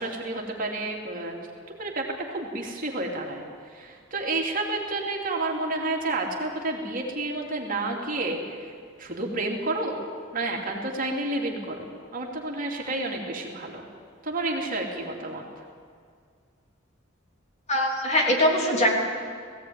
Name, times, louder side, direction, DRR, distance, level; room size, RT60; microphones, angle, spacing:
voice 1, 0.0-1.4 1.7-8.7 9.0-10.0 10.3-13.8 14.2-15.5, right 2 dB, 45° right, 0 dB, 2.9 m, -30 dB
voice 2, 17.7-18.9, left 1 dB, 35° left, 0 dB, 3.4 m, -22 dB
19.0 x 16.0 x 9.5 m, 2.1 s
head